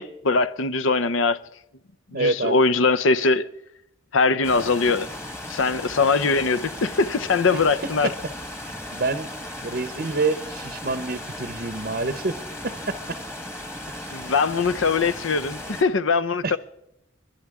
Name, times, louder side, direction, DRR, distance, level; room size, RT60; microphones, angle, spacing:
voice 1, 0.0-1.4 2.1-3.5 4.1-5.1 5.5-8.1 14.1-16.6, left 4 dB, 75° left, 0.7 m, -21 dB
voice 2, 2.1-2.5 7.5-7.6 8.9-9.3 9.6-13.2 13.9-14.2 16.4-16.6, right 3 dB, 45° right, 0.7 m, -27 dB
sound 1, 4.4-15.8, left 1 dB, 15° left, 1.4 m, -36 dB
27.5 x 11.5 x 3.6 m
head